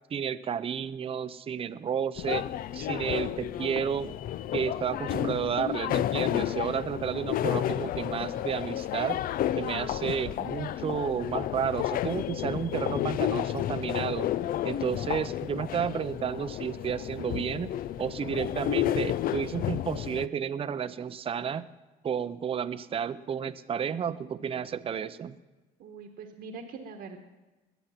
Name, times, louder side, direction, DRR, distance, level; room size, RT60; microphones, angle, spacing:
voice 1, 0.1-2.5 2.7-4.1 4.5-9.2 9.6-14.3 14.6-17.7 18.0-21.6 22.0-25.4, right 7 dB, 35° right, 13 dB, 0.6 m, -32 dB
sound 1, 2.2-20.3, left 12 dB, 60° left, 0.5 m, -31 dB
voice 2, 25.8-27.2, right 4 dB, 70° right, 3 dB, 1.4 m, -43 dB
21.0 x 8.1 x 5.8 m, 1.2 s
cardioid pair, 110°, 17 cm